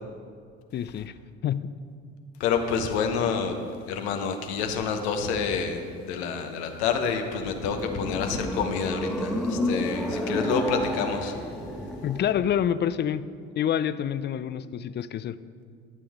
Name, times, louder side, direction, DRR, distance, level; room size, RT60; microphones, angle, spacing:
voice 1, 0.7-1.1 1.4-1.7 12.0-13.3 13.6-15.4, left 9 dB, 35° left, 15 dB, 0.4 m, -27 dB
voice 2, 2.4-3.5 3.9-11.3, left 6 dB, 80° left, 5 dB, 0.9 m, -28 dB
sound 1, 7.3-12.6, left 1 dB, ahead, 1.4 m, -31 dB
12.0 x 7.0 x 3.6 m, 2.2 s
hypercardioid pair, 60°, 32 cm